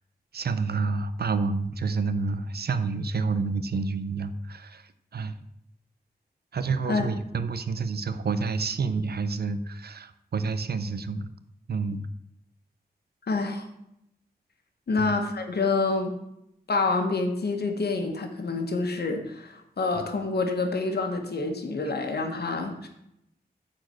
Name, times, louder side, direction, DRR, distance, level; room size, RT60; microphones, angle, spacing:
voice 1, 0.3-5.4 6.5-11.3 11.7-12.1 15.0-15.1 19.9-20.0, right 4 dB, 80° right, 11 dB, 0.7 m, -29 dB
voice 2, 13.3-13.6 14.9-16.2 16.7-22.9, left 3 dB, 85° left, 5 dB, 1.4 m, -27 dB
9.6 x 4.5 x 7.7 m, 0.80 s
wide cardioid pair, 100°, 16 cm